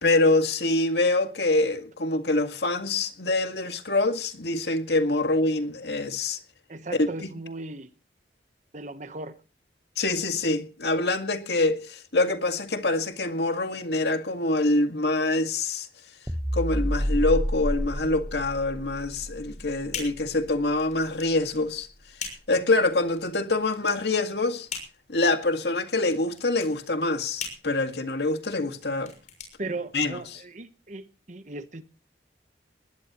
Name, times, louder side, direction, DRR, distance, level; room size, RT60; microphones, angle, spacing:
voice 1, 0.0-6.4 7.0-7.1 10.0-15.9 16.5-21.9 22.5-24.7 25.1-29.1 29.9-30.2, left 2 dB, 70° left, 2.0 m, -25 dB
voice 2, 6.7-7.9 8.7-9.3 29.6-31.8, right 2 dB, 45° right, 1.1 m, -37 dB
sound 1, 16.3-20.8, equal, ahead, 1.2 m, -30 dB
sound 2, 19.1-30.4, left 6 dB, 45° left, 6.5 m, -42 dB
20.0 x 19.0 x 3.1 m
head